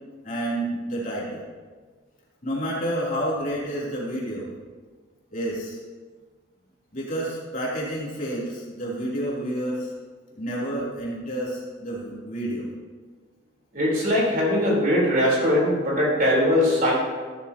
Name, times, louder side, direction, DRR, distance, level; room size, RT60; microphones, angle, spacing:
voice 1, 0.2-1.4 2.4-4.5 5.3-5.8 6.9-9.9 10.3-12.7, right 1 dB, 40° left, -6 dB, 3.2 m, -29 dB
voice 2, 13.7-16.9, left 1 dB, 45° right, -4 dB, 3.9 m, -21 dB
14.5 x 12.5 x 2.9 m, 1.4 s
head